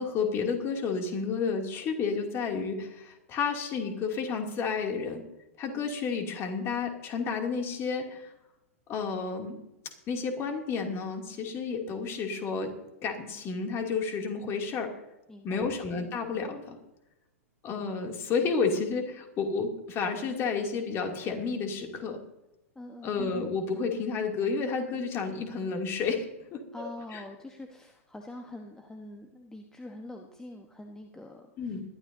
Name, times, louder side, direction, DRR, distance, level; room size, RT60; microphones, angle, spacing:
voice 1, 0.0-5.2 5.6-8.3 8.9-9.6 10.1-12.7 13.0-14.9 15.4-16.8 17.6-22.2 23.0-27.2 31.6-31.8, left 5 dB, 30° left, 3 dB, 2.6 m, -31 dB
voice 2, 15.3-15.7 22.7-23.2 26.7-31.8, left 1 dB, 5° left, 4 dB, 1.1 m, -45 dB
21.0 x 12.5 x 2.7 m, 0.93 s
figure-of-eight pair, 105°, 8 cm